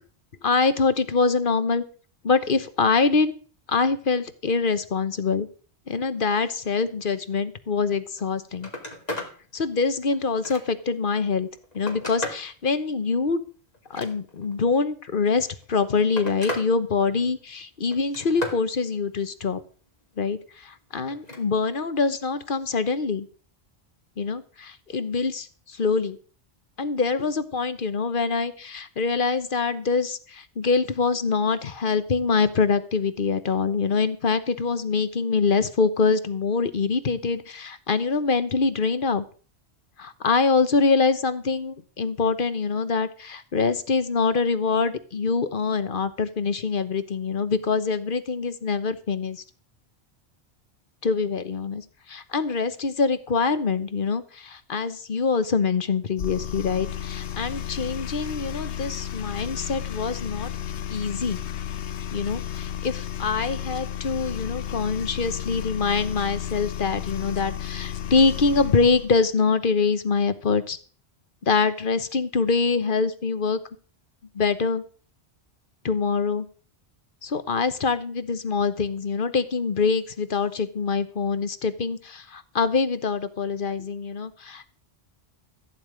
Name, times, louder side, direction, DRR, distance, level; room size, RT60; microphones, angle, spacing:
voice 1, 0.4-1.8 2.2-3.3 3.7-5.5 5.9-8.7 9.5-11.5 11.7-13.4 13.9-19.6 20.2-23.3 24.2-26.2 26.8-39.2 40.0-49.4 51.0-51.8 52.1-60.5 60.9-61.4 62.1-70.8 71.5-73.6 74.3-74.8 75.8-76.5 77.2-84.8, left 4 dB, 55° left, 12 dB, 1.2 m, -24 dB
Telephone, 8.1-8.2 8.5-9.3 9.8-10.9 11.5-12.5 13.7-14.5 15.5-16.7 17.0-17.5 17.9-18.6 21.1-21.4 22.8-23.0, left 1 dB, 40° left, 2.7 m, -35 dB
sound 1, 56.2-69.1, left 9 dB, 90° left, 1.0 m, -33 dB
14.5 x 9.4 x 5.0 m, 0.40 s
omnidirectional pair, 1.1 m